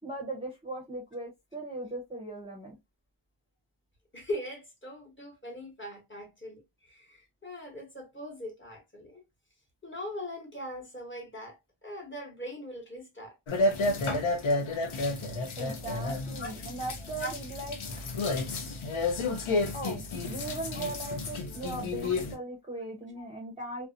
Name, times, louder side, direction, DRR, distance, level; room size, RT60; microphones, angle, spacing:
voice 1, 0.0-2.8 15.6-17.8 19.7-23.9, right 2 dB, 10° right, 0.6 m, -38 dB
voice 2, 4.1-9.2 9.8-13.3 16.4-16.5 17.2-17.3 20.7-20.8 22.1-22.2, left 1 dB, 25° left, 0.9 m, -40 dB
sound 1, 13.5-22.3, left 2 dB, 80° left, 0.7 m, -31 dB
2.5 x 2.1 x 2.4 m
wide cardioid pair, 115°, 48 cm